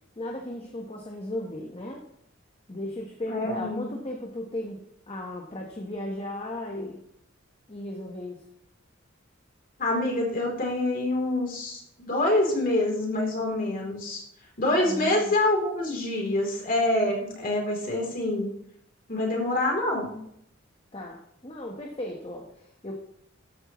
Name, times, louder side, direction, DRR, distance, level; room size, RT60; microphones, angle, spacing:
voice 1, 0.2-2.0 2.7-7.0 7.7-8.4 14.8-15.3 20.9-22.9, left 1 dB, 30° left, 0 dB, 1.2 m, -36 dB
voice 2, 3.3-3.9 9.8-14.2 14.6-18.5 19.1-20.1, left 1 dB, 45° left, -1 dB, 3.4 m, -26 dB
13.5 x 9.7 x 3.1 m, 0.73 s
head